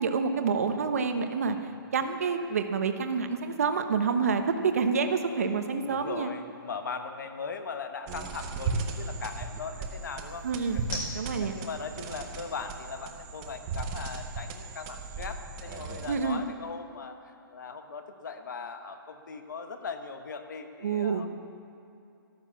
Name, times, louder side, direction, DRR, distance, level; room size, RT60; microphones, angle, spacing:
voice 1, 0.0-1.6 1.9-6.3 10.4-10.8 11.1-11.5 16.1-16.4 20.8-21.3, right 5 dB, 40° right, 7 dB, 1.0 m, -28 dB
sound 1, 1.1-15.3, left 1 dB, 10° left, 1.1 m, -50 dB
voice 2, 5.8-10.5 10.7-21.3, left 5 dB, 55° left, 7 dB, 1.2 m, -39 dB
sound 2, 8.1-16.5, right 4 dB, 10° right, 0.5 m, -37 dB
12.5 x 12.0 x 7.1 m, 2.6 s
hypercardioid pair, 180°, 12 cm